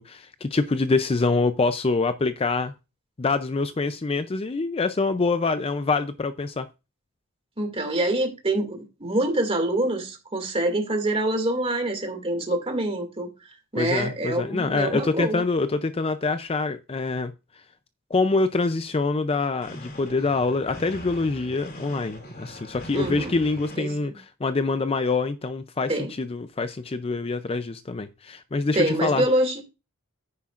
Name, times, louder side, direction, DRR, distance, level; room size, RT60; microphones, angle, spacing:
voice 1, 0.0-2.7 3.2-6.7 13.8-17.3 18.1-25.9 26.2-29.2, left 3 dB, 25° left, 0.5 m, -25 dB
voice 2, 7.6-13.3 13.7-15.4 22.9-23.3 23.8-24.1 25.9-26.1 28.7-29.6, right 1 dB, 25° right, 2.3 m, -25 dB
sound 1, 19.6-23.8, left 1 dB, 45° left, 2.6 m, -41 dB
9.9 x 9.7 x 2.5 m
head